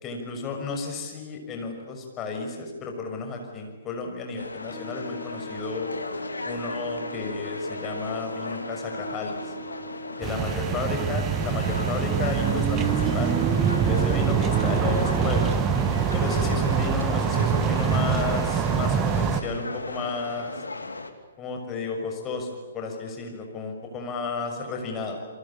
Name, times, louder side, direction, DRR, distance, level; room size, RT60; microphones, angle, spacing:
voice 1, 0.0-5.9 6.4-9.5 10.2-13.4 13.8-15.5 16.1-20.6 21.4-25.2, left 4 dB, 20° left, 3 dB, 6.3 m, -33 dB
sound 1, 4.4-21.1, left 2 dB, 80° left, 2.8 m, -36 dB
Wind instrument woodwind instrument, 4.7-10.5, equal, ahead, 5.5 m, -41 dB
sound 2, 10.2-19.4, right 7 dB, 20° right, 1.4 m, -24 dB
29.0 x 23.0 x 8.7 m, 1.3 s
figure-of-eight pair, 125°, 0 cm